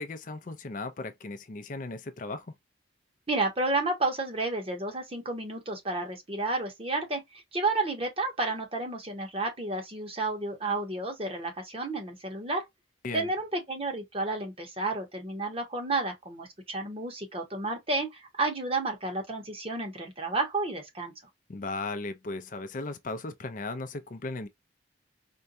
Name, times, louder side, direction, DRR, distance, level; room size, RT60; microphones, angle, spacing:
voice 1, 0.0-2.5 13.0-13.3 21.5-24.5, left 3 dB, 45° left, 0.4 m, -36 dB
voice 2, 3.3-12.6 13.1-21.1, right 2 dB, 30° right, 1.1 m, -31 dB
4.4 x 2.3 x 2.5 m
head